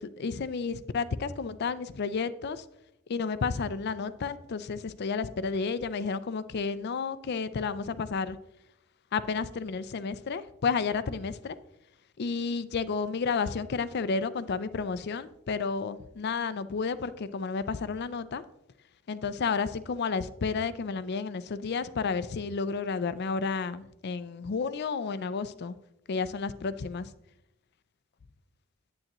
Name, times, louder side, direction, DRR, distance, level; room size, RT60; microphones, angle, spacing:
voice 1, 0.0-2.6 3.1-8.4 9.1-11.6 12.2-18.4 19.1-25.8 26.1-27.1, left 5 dB, 50° left, 15 dB, 0.4 m, -31 dB
8.9 x 8.6 x 3.0 m, 0.86 s
head